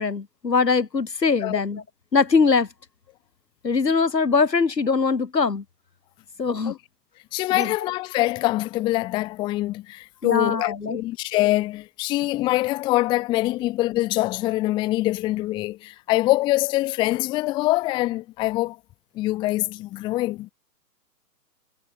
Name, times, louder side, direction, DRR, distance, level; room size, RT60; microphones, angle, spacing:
voice 1, 0.0-1.8 2.1-2.7 3.6-5.6 6.4-6.8 7.5-7.7 10.2-11.0, left 4 dB, 90° left, 3.4 m, -22 dB
voice 2, 7.3-18.8 19.1-20.5, left 17 dB, 10° left, 0.6 m, -24 dB
hypercardioid pair, 130°, 48 cm